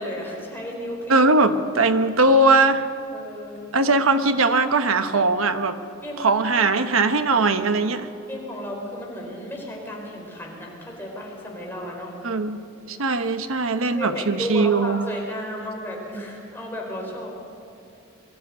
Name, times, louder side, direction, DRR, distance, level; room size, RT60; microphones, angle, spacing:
voice 1, 0.0-1.3 3.1-3.8 6.0-6.2 8.3-12.1 13.9-17.3, left 1 dB, 10° left, -2 dB, 4.2 m, -33 dB
voice 2, 1.1-2.8 3.7-5.8 6.2-8.1 12.2-12.6 12.9-15.0, right 3 dB, 80° right, 9 dB, 1.1 m, -20 dB
22.0 x 13.0 x 9.6 m, 2.6 s
head